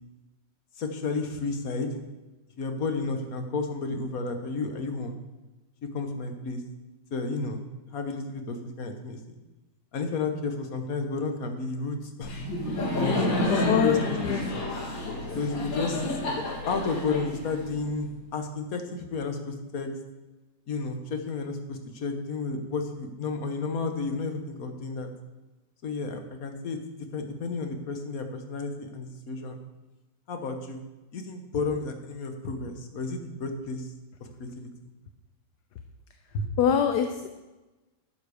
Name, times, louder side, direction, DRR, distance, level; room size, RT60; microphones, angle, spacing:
voice 1, 0.8-2.0 2.6-5.2 5.9-6.6 7.1-9.2 9.9-12.3 13.0-14.0 14.3-14.5 15.3-19.9 20.7-25.1 25.8-26.8 27.1-29.6 30.3-30.8 31.1-33.9 34.2-34.7 36.3-36.4, left 4 dB, 55° left, 6 dB, 1.6 m, -32 dB
Laughter, 12.2-18.1, left 1 dB, 90° left, 2.7 m, -30 dB
voice 2, 13.5-14.4 36.6-37.3, left 8 dB, 70° left, 7 dB, 1.2 m, -25 dB
11.5 x 8.0 x 4.9 m, 1.1 s
omnidirectional pair, 2.0 m